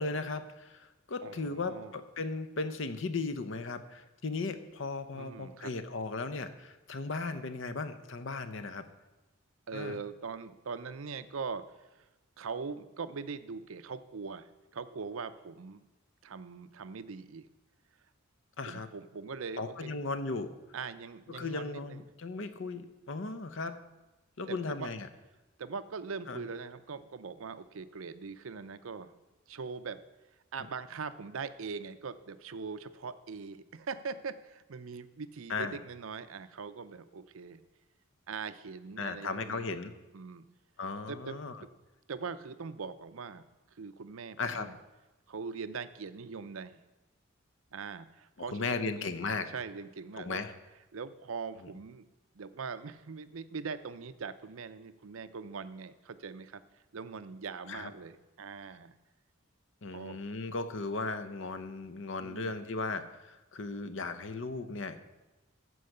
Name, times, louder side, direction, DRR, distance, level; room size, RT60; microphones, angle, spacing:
voice 1, 0.0-8.9 9.7-10.0 18.6-18.9 19.6-20.5 21.3-23.8 24.4-25.1 26.3-26.5 35.5-35.8 39.0-39.9 40.8-41.6 44.4-44.7 48.5-49.5 50.2-50.5 57.7-57.9 59.8-65.0, left 3 dB, 60° left, 11 dB, 0.8 m, -36 dB
voice 2, 1.2-1.9 5.1-5.7 9.7-11.6 11.9-12.0 12.4-15.8 16.2-17.5 18.6-20.0 20.7-22.0 24.5-24.9 25.6-29.2 29.5-30.0 30.5-37.6 38.3-39.7 40.1-40.5 41.1-41.4 42.1-44.8 45.3-46.8 47.7-49.1 49.5-50.4 50.9-52.1 52.3-56.6 56.9-58.9 59.9-60.2 62.2-62.5, right 5 dB, 75° right, 12 dB, 0.6 m, -41 dB
14.0 x 4.7 x 6.6 m, 1.1 s
head